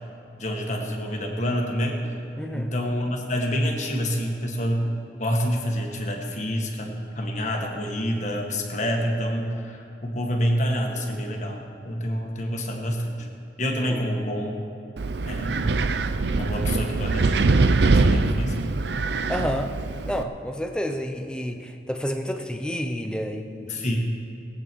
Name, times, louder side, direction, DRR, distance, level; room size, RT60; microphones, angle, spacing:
voice 1, 0.4-2.0 2.5-4.9 5.2-13.3 13.6-14.6 15.2-15.7 16.3-18.5 23.7-24.0, equal, 40° left, 1 dB, 1.7 m, -27 dB
voice 2, 2.4-2.7 13.9-14.0 19.3-19.7 20.1-24.0, equal, 5° left, 5 dB, 0.7 m, -30 dB
Wind, 15.0-20.2, right 3 dB, 70° right, 0.6 m, -23 dB
21.5 x 8.7 x 4.6 m, 2.9 s
head